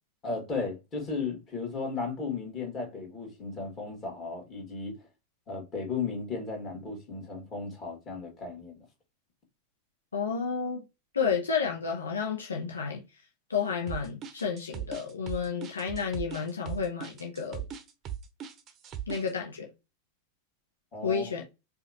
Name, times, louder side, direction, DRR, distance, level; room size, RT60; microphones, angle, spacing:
voice 1, 0.2-4.9 5.5-8.8 20.9-21.2, left 4 dB, 30° left, 2.0 m, -35 dB
voice 2, 10.1-10.8 11.1-13.0 13.5-17.6 19.1-19.7 21.0-21.4, left 6 dB, 75° left, 0.8 m, -31 dB
sound 1, 13.9-19.3, right 9 dB, 30° right, 0.7 m, -38 dB
4.9 x 2.6 x 2.9 m
figure-of-eight pair, 90°, 0 cm